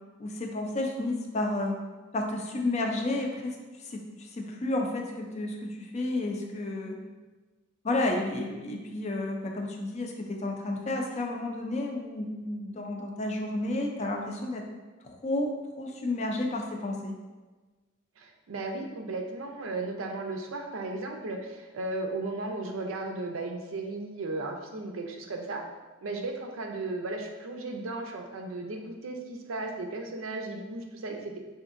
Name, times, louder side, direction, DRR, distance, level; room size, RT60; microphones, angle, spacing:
voice 1, 0.2-1.8 2.1-3.6 3.9-4.0 4.3-7.0 7.8-14.6 15.0-17.1, left 2 dB, 35° left, 2 dB, 0.4 m, -31 dB
voice 2, 18.2-25.7 26.0-31.4, right 2 dB, 80° right, 3 dB, 0.5 m, -35 dB
5.0 x 2.6 x 2.5 m, 1.3 s
head